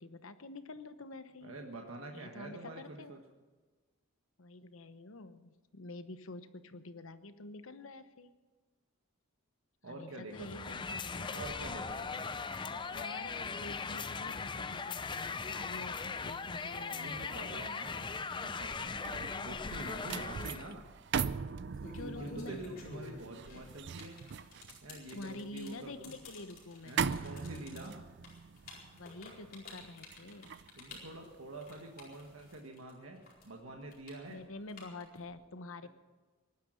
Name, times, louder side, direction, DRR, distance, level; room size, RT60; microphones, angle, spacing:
voice 1, 0.0-1.6 2.1-3.2 4.4-8.3 9.9-11.5 12.9-17.6 19.3-19.6 20.1-20.5 21.9-22.6 23.5-23.8 25.1-27.0 29.0-30.5 34.3-35.9, left 2 dB, 75° left, 11 dB, 1.0 m, -48 dB
voice 2, 1.4-3.2 9.8-10.9 11.3-12.5 16.6-19.1 19.4-20.8 22.2-24.2 24.8-26.2 26.8-28.1 30.7-34.4 35.8-35.9, right 2 dB, 80° right, 2 dB, 1.5 m, -47 dB
sound 1, 10.3-20.7, left 5 dB, 25° left, 0.5 m, -39 dB
sound 2, 18.6-31.9 32.3-32.5, right 6 dB, 55° right, 0.5 m, -41 dB
sound 3, 20.6-20.8 21.5-32.9 33.2-35.3, left 2 dB, 45° left, 4.5 m, -50 dB
19.0 x 11.5 x 6.3 m, 1.3 s
head